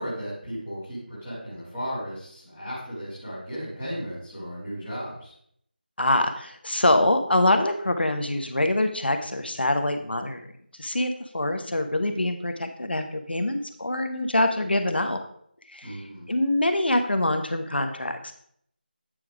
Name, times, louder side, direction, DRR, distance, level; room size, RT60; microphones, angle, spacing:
voice 1, 0.0-5.3 15.8-16.3, equal, ahead, -15 dB, 0.5 m, -35 dB
voice 2, 6.0-10.4 10.8-15.2 15.7-16.0 16.3-18.3, left 1 dB, 80° left, 7 dB, 1.1 m, -24 dB
9.0 x 4.9 x 3.4 m, 0.66 s
figure-of-eight pair, 180°, 5 cm